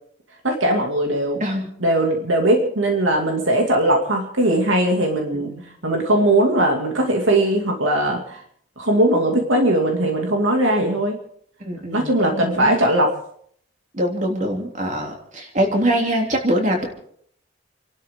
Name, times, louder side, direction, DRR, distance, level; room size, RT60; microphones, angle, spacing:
voice 1, 0.4-1.4 1.8-5.5 5.8-8.2 8.8-11.2 11.9-13.1, right 1 dB, 80° right, 2 dB, 2.6 m, -19 dB
voice 2, 1.4-1.7 5.3-5.6 11.6-12.8 13.9-16.9, equal, 40° right, 1 dB, 3.3 m, -23 dB
30.0 x 12.5 x 3.9 m, 0.65 s
head